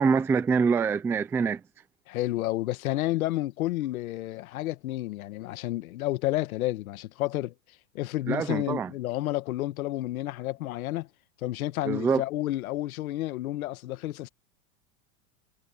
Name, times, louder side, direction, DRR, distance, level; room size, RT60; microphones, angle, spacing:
voice 1, 0.0-1.6 8.3-8.9 11.8-12.2, right 5 dB, 5° right, 0.4 m, -25 dB
voice 2, 2.1-7.5 7.9-11.1 11.4-14.3, left 16 dB, 80° left, 1.4 m, -30 dB
supercardioid pair, 155°, 42 cm